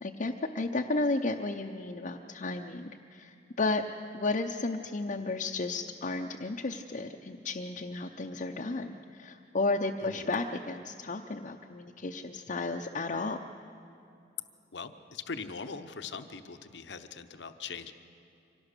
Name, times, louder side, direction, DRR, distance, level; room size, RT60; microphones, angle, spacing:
voice 1, 0.0-3.8 4.1-13.4, left 3 dB, 45° left, 1 dB, 0.7 m, -33 dB
voice 2, 14.7-17.9, left 5 dB, 70° left, 9 dB, 0.9 m, -41 dB
24.5 x 18.0 x 6.7 m, 2.7 s
head